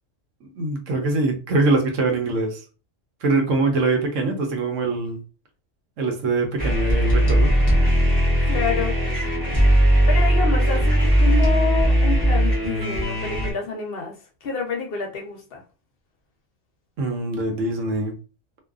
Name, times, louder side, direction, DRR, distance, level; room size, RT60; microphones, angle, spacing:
voice 1, 0.4-2.6 3.2-5.2 6.0-7.5 17.0-18.2, right 3 dB, 75° right, 1.1 m, -23 dB
sound 1, 6.6-13.5, equal, 25° right, 0.4 m, -19 dB
voice 2, 8.4-9.0 10.1-14.1 14.4-15.6, left 5 dB, 55° left, 0.7 m, -28 dB
2.6 x 2.3 x 2.3 m
omnidirectional pair, 1.4 m